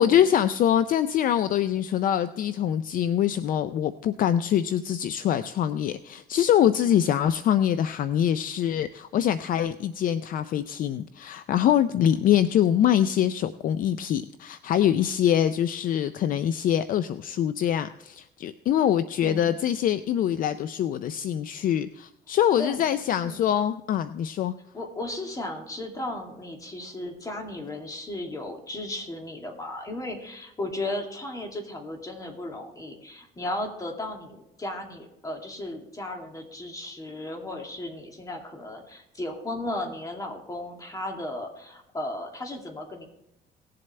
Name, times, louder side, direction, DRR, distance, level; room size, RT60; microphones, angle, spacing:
voice 1, 0.0-24.5, left 10 dB, 55° left, 13 dB, 0.5 m, -24 dB
voice 2, 19.2-19.7 22.6-22.9 23.2-23.5 24.7-43.1, left 1 dB, 20° left, 2 dB, 2.4 m, -35 dB
18.5 x 7.6 x 3.3 m, 0.84 s
cardioid pair, 110°, 17 cm